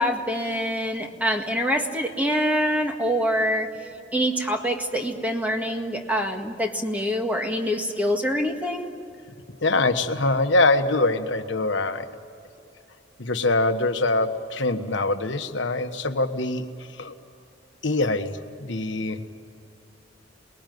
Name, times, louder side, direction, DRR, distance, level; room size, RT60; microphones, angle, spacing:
voice 1, 0.0-3.8 4.1-8.9, equal, 10° right, 3 dB, 1.8 m, -25 dB
voice 2, 9.6-12.1 13.2-16.6 16.9-17.1 17.8-19.2, left 2 dB, 70° left, 7 dB, 1.3 m, -23 dB
28.0 x 20.0 x 9.3 m, 2.6 s
head